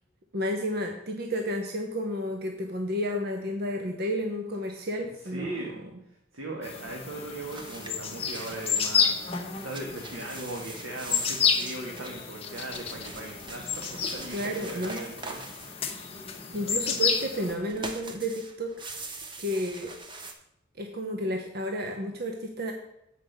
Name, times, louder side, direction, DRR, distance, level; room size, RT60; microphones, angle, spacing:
voice 1, 0.3-5.6 14.3-15.0 16.5-18.7 19.4-19.9 20.8-22.7, equal, 50° right, 3 dB, 0.8 m, -31 dB
voice 2, 5.3-5.9 6.3-9.2 9.6-16.1 16.4-16.9, right 2 dB, 85° right, -1 dB, 1.5 m, -39 dB
sound 1, 6.6-17.5, left 6 dB, 30° left, 1.0 m, -31 dB
sound 2, 7.5-9.1 9.5-16.5 17.0-20.3, right 3 dB, 25° right, 0.8 m, -43 dB
7.9 x 5.1 x 6.6 m, 0.81 s
head